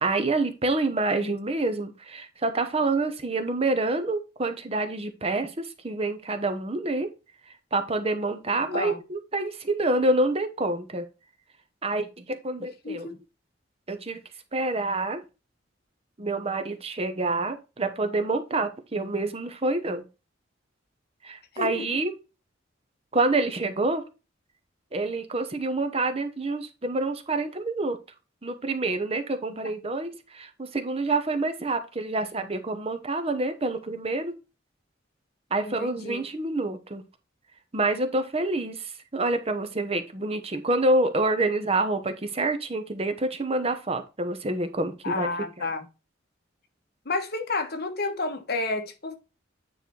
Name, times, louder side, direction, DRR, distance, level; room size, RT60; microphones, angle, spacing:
voice 1, 0.0-7.1 7.7-11.0 11.8-13.1 13.9-14.2 14.5-15.2 16.2-20.0 21.2-22.1 23.1-24.0 24.9-28.0 28.4-34.3 35.5-37.0 37.7-45.3, right 2 dB, 30° right, 0.8 m, -27 dB
voice 2, 21.5-21.9 35.6-36.2 45.0-45.9 47.0-49.2, left 3 dB, 55° left, 1.3 m, -30 dB
9.3 x 3.3 x 4.4 m
head